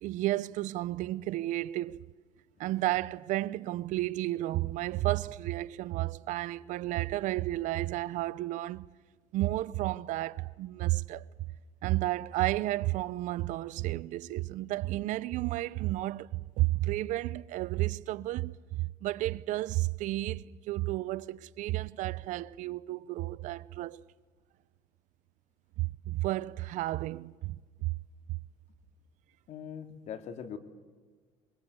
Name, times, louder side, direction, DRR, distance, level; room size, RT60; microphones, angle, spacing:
voice 1, 0.0-2.0 2.6-8.8 9.3-11.3 11.8-24.0 25.8-27.9 28.3-28.4, right 17 dB, 70° right, 0.7 m, -32 dB
voice 2, 29.5-30.6, left 8 dB, 60° left, 2.6 m, -41 dB
23.5 x 23.5 x 8.2 m
supercardioid pair, 95°, 13 cm